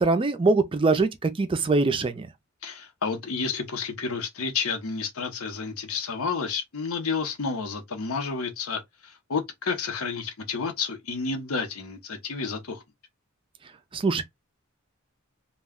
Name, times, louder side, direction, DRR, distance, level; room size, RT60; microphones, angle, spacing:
voice 1, 0.0-2.3 13.9-14.2, right 3 dB, 25° right, 0.4 m, -23 dB
voice 2, 2.6-12.8, left 5 dB, 75° left, 0.7 m, -30 dB
2.3 x 2.2 x 3.4 m
head